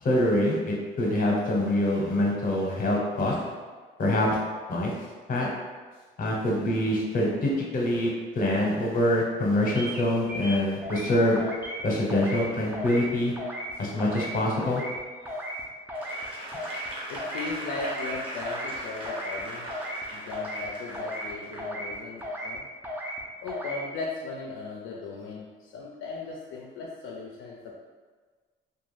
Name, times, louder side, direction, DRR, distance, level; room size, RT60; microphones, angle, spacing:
voice 1, 0.0-3.4 4.0-4.3 4.7-4.9 5.3-5.5 6.2-11.4 11.8-13.3 13.8-14.8, left 1 dB, 45° left, -2 dB, 0.8 m, -25 dB
sound 1, 9.8-10.0 10.3-11.1 11.4-11.8 12.1-12.5 12.7-13.1 13.4-13.7 14.0-14.3 14.6-15.0 15.3-15.6 15.9-16.2 16.5-16.9 17.1-17.5 17.8-18.1 18.4-18.8 19.0-19.4 19.7-20.0 20.3-20.7 20.9-21.3 21.6-21.9 22.2-22.6 22.8-23.2 23.5-23.8, equal, 10° right, 0.5 m, -35 dB
Applause / Crowd, 15.9-21.7 22.2-22.3, right 1 dB, 25° right, 0.8 m, -39 dB
voice 2, 17.1-19.7 20.1-22.7 23.4-27.7, left 3 dB, 75° left, -3 dB, 0.4 m, -37 dB
2.3 x 2.2 x 3.2 m, 1.5 s
cardioid pair, 90°, 20 cm